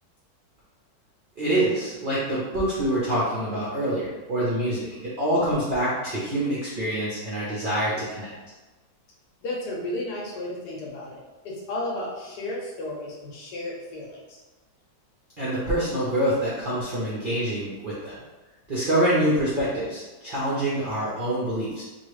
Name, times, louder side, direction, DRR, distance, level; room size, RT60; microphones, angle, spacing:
voice 1, 1.4-8.3 15.4-18.2 18.7-21.8, right 1 dB, 60° right, -9 dB, 0.5 m, -26 dB
voice 2, 9.4-14.4, left 1 dB, 70° left, -3 dB, 1.2 m, -33 dB
3.0 x 2.4 x 3.1 m, 1.2 s
omnidirectional pair, 2.0 m